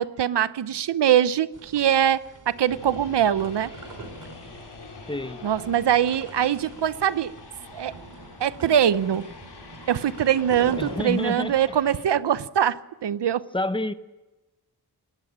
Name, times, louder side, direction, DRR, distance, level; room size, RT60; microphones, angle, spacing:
voice 1, 0.0-3.7 5.4-7.3 7.7-7.9 8.4-9.2 9.9-13.4, right 10 dB, 90° right, 0.8 m, -23 dB
sound 1, 1.5-11.4, right 3 dB, 50° right, 3.2 m, -43 dB
sound 2, 2.6-12.0, left 4 dB, 75° left, 3.6 m, -45 dB
voice 2, 5.1-5.4 10.8-11.6 13.5-13.9, left 2 dB, 10° left, 0.8 m, -28 dB
21.0 x 17.5 x 8.7 m
wide cardioid pair, 170°, 40 cm